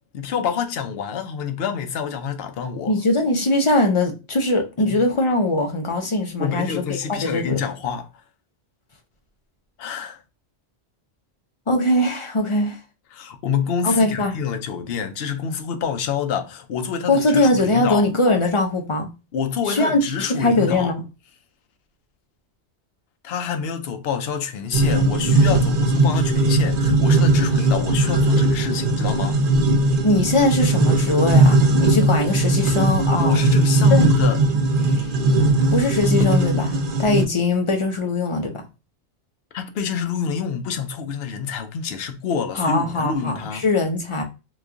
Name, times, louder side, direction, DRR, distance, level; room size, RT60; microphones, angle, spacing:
voice 1, 0.1-3.0 4.9-5.0 6.4-8.1 9.8-10.2 13.1-18.0 19.3-20.9 23.2-29.4 33.2-34.4 34.8-35.1 39.5-43.6, left 7 dB, 65° left, 0.8 m, -27 dB
voice 2, 2.9-7.6 11.7-12.8 13.8-14.4 17.1-19.1 19.7-20.0 20.3-21.0 30.0-33.4 33.9-34.1 35.7-38.5 42.6-44.2, left 2 dB, 35° left, 0.6 m, -21 dB
sound 1, 24.7-37.3, right 2 dB, 55° right, 0.7 m, -18 dB
3.0 x 2.3 x 3.5 m
omnidirectional pair, 1.2 m